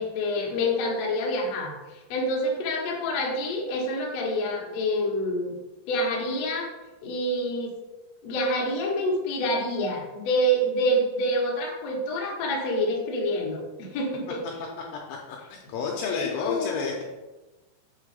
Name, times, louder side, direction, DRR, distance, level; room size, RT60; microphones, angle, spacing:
voice 1, 0.0-5.5 5.9-6.7 7.0-7.7 8.2-14.4 16.1-16.9, equal, 70° left, -3 dB, 1.6 m, -27 dB
voice 2, 15.3-17.0, left 5 dB, 85° left, 0 dB, 2.7 m, -30 dB
8.2 x 4.1 x 5.1 m, 1.1 s
omnidirectional pair, 5.8 m